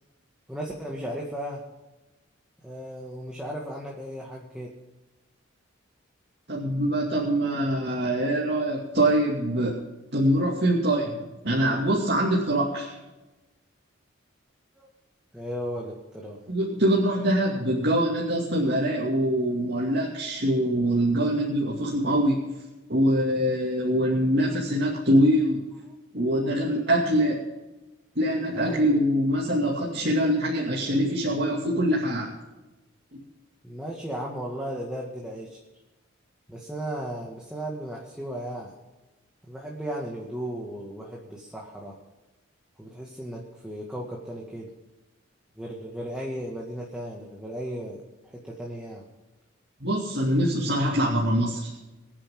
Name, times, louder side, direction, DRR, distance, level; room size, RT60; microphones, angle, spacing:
voice 1, 0.5-1.6 2.6-4.7 10.4-10.6 14.8-14.9 15.3-16.4 28.5-28.9 33.6-35.6 36.5-38.7 39.4-42.0 42.8-44.7 45.6-49.0, equal, 5° right, -3 dB, 2.0 m, -35 dB
voice 2, 6.5-9.8 10.1-13.0 16.5-22.4 22.9-25.6 26.1-27.4 28.2-32.3 33.1-33.2 49.8-51.7, equal, 50° right, -4 dB, 2.5 m, -24 dB
23.5 x 10.0 x 3.8 m, 1.1 s
head